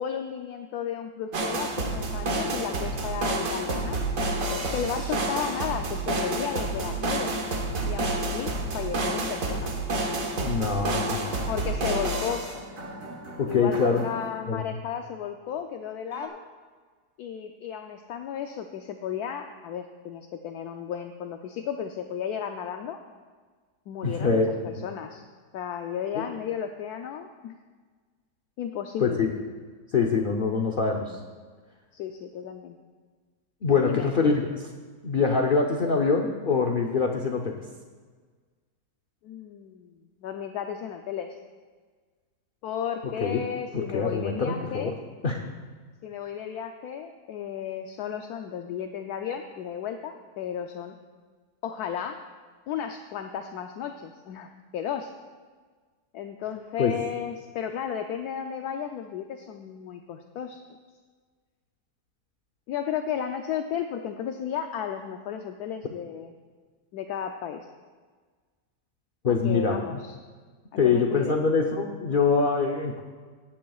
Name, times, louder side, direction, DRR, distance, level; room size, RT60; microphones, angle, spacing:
voice 1, 0.0-4.0 4.5-7.3 7.9-9.7 11.5-12.4 13.5-16.4 17.2-23.0 23.9-25.2 25.5-27.6 28.6-29.2 31.9-32.8 33.8-34.1 39.2-41.3 42.6-44.9 46.0-50.9 51.6-52.2 52.7-55.1 56.1-60.6 62.7-66.3 66.9-67.7 69.3-70.2 70.8-71.4, left 8 dB, 75° left, 5 dB, 1.1 m, -34 dB
sound 1, 1.3-14.4 16.1-16.3, right 2 dB, 55° right, 1.6 m, -29 dB
voice 2, 10.4-11.5 13.4-14.0 14.5-14.6 24.0-24.5 24.8-24.9 26.2-26.3 29.0-29.3 29.9-31.2 33.6-34.7 35.0-37.6 43.0-43.4 43.7-45.0 45.2-45.4 56.8-56.9 69.2-70.0 70.8-73.0, left 5 dB, 50° left, 2 dB, 0.6 m, -24 dB
17.0 x 11.0 x 2.4 m, 1.5 s
omnidirectional pair, 1.7 m